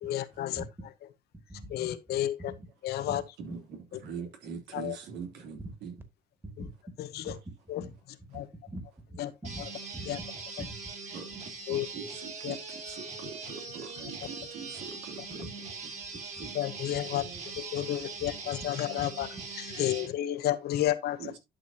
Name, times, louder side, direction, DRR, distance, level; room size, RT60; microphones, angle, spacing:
voice 1, 0.0-0.6 1.7-2.4 2.8-3.2 4.7-5.0 7.7-7.8 8.3-8.4 9.2-9.3 10.1-10.2 11.7-11.9 12.4-12.6 14.0-14.1 16.5-17.2 17.7-19.3 19.8-21.4, left 13 dB, 70° left, 1.0 m, -31 dB
voice 2, 4.0-5.9 11.1-11.4 11.7-15.4 16.4-16.5 21.2-21.4, right 6 dB, 85° right, 2.9 m, -42 dB
voice 3, 7.2-7.9 8.7-8.8 9.1-9.6 9.9-10.1 10.6-10.9 15.4-15.5 16.1-16.5 18.2-18.3 19.0-19.1, right 1 dB, 15° right, 2.2 m, -43 dB
sound 1, 9.4-20.1, right 4 dB, 40° right, 3.3 m, -41 dB
11.5 x 6.3 x 2.8 m
cardioid pair, 110°, 17 cm